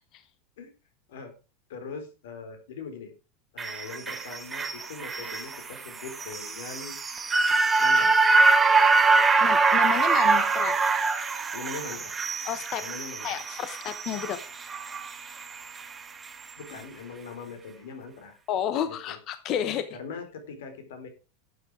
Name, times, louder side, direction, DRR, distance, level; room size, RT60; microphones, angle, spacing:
voice 1, 1.7-3.1 3.5-7.0 7.8-8.2 11.5-12.2 12.8-13.4 16.6-18.4 18.8-19.2 19.9-21.1, left 5 dB, 85° left, 7 dB, 4.2 m, -41 dB
sound 1, 3.6-15.9 16.3-16.4, right 4 dB, 10° right, 0.9 m, -24 dB
voice 2, 9.4-10.8 12.4-12.8 13.2-14.4 18.5-19.9, left 10 dB, 30° left, 11 dB, 0.8 m, -31 dB
11.5 x 8.3 x 4.9 m, 0.32 s
supercardioid pair, 180°, 0 cm